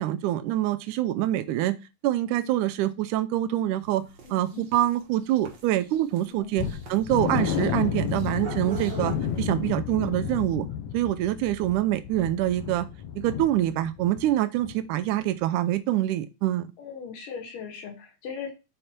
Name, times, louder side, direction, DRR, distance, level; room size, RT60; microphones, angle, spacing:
voice 1, 0.0-1.8 2.0-4.0 4.3-10.7 10.9-12.9 13.2-16.7, right 13 dB, 80° right, 11 dB, 2.1 m, -25 dB
sound 1, 3.8-9.4, right 6 dB, 50° right, 1.5 m, -43 dB
voice 2, 4.2-4.7 6.3-6.5 16.8-18.5, left 6 dB, 90° left, 2 dB, 3.1 m, -39 dB
sound 2, 6.6-14.3 14.6-14.8 15.2-15.3, left 8 dB, 70° left, 1.9 m, -31 dB
6.7 x 4.4 x 4.3 m, 0.27 s
omnidirectional pair, 3.7 m